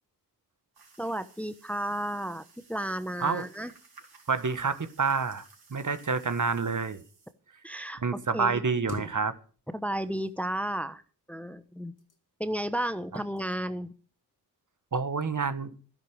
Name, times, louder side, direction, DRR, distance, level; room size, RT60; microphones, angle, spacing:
sound 1, 0.7-7.3, right 4 dB, 60° right, 4.4 m, -57 dB
voice 1, 1.0-3.7 7.6-8.0 8.3-8.6 9.7-11.0 11.3-11.9 12.4-13.9, right 1 dB, 5° left, 12 dB, 1.0 m, -33 dB
voice 2, 4.3-5.4 5.7-7.0 8.0-9.3 14.9-15.7, right 5 dB, 45° right, 12 dB, 1.4 m, -28 dB
sound 2, 8.7-9.8 10.1-10.8 11.7-12.5 13.2-13.5 13.9-14.2, left 3 dB, 50° left, 3.2 m, -44 dB
12.0 x 10.5 x 6.5 m, 0.40 s
cardioid pair, 45°, 41 cm